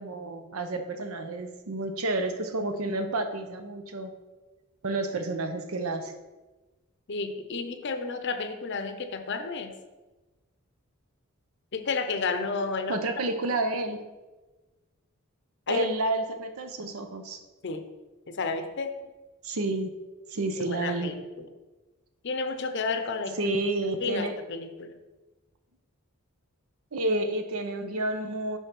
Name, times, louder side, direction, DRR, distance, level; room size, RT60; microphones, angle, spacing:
voice 1, 0.0-4.1 4.8-6.1 12.9-14.1 15.7-17.4 19.4-20.0 20.3-21.1 23.4-24.4 26.9-28.6, right 2 dB, 80° right, 7 dB, 0.8 m, -30 dB
voice 2, 7.1-9.7 11.7-13.0 15.7-15.9 17.6-17.9 18.3-18.9 20.6-21.5 22.2-23.5 24.0-25.0, left 4 dB, 55° left, 8 dB, 0.6 m, -31 dB
5.5 x 4.4 x 6.0 m, 1.2 s
head